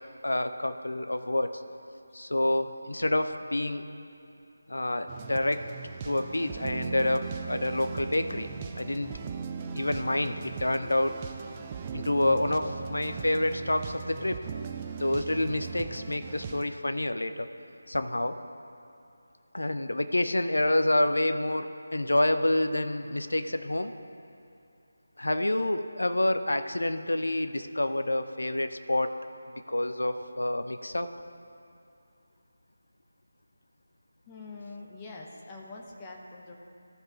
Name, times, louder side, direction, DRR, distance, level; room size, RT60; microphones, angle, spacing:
voice 1, 0.2-1.6 2.1-3.8 4.7-5.6 6.0-8.5 8.8-9.1 9.7-11.1 11.9-14.4 15.0-17.5 17.9-18.4 19.5-23.9 25.2-29.1 29.7-31.1, left 1 dB, 65° left, 9 dB, 0.6 m, -28 dB
sound 1, 5.1-16.6, right 6 dB, 20° right, 0.4 m, -38 dB
voice 2, 34.3-36.5, left 3 dB, 15° left, -2 dB, 0.8 m, -44 dB
14.5 x 4.9 x 3.6 m, 2.7 s
figure-of-eight pair, 160°, 0 cm